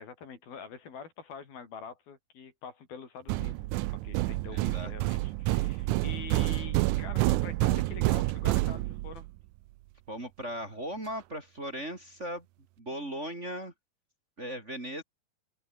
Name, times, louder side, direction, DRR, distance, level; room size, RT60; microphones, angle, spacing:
voice 1, 0.0-9.3, left 6 dB, 80° left, 6.0 m, -45 dB
sound 1, 3.3-9.3, right 19 dB, 85° right, 1.8 m, -28 dB
voice 2, 4.5-4.9 10.1-12.4 12.8-13.7 14.4-15.0, equal, 20° right, 3.3 m, -38 dB
open air
omnidirectional pair, 4.2 m